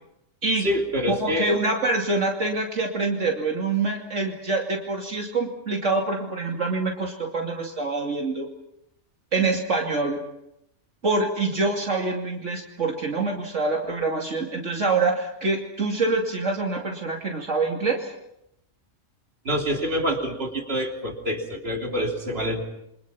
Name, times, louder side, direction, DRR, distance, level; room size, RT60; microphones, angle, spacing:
voice 1, 0.6-1.5 19.5-22.7, equal, 50° right, 1 dB, 3.7 m, -26 dB
voice 2, 1.2-8.5 9.3-10.2 11.0-18.1, right 3 dB, 70° right, 0 dB, 3.0 m, -25 dB
29.0 x 25.0 x 6.0 m, 0.81 s
omnidirectional pair, 1.3 m